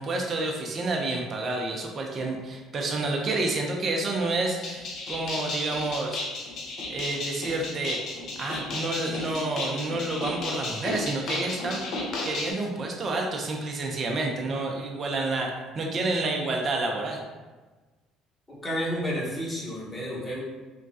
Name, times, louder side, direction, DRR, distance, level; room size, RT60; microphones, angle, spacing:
voice 1, 0.0-6.2 6.9-8.0 8.4-11.8 12.2-17.2, right 2 dB, 40° right, 0 dB, 0.5 m, -29 dB
sound 1, 4.6-12.5, left 2 dB, 60° left, 0.6 m, -33 dB
voice 2, 18.5-20.4, equal, 25° left, -5 dB, 1.0 m, -31 dB
3.1 x 2.2 x 2.6 m, 1.3 s
supercardioid pair, 70°, 0 cm